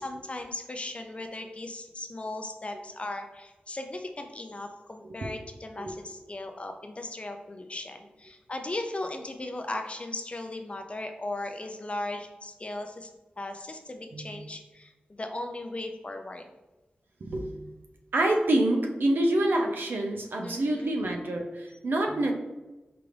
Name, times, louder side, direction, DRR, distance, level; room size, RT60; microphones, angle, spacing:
voice 1, 0.0-13.1 13.4-16.5 20.4-20.9, left 2 dB, 35° left, 5 dB, 0.5 m, -37 dB
voice 2, 14.1-14.5 17.2-17.8 18.1-22.3, right 1 dB, 80° right, 2 dB, 0.6 m, -27 dB
4.8 x 2.5 x 3.2 m, 1.1 s
wide cardioid pair, 65°, 3 cm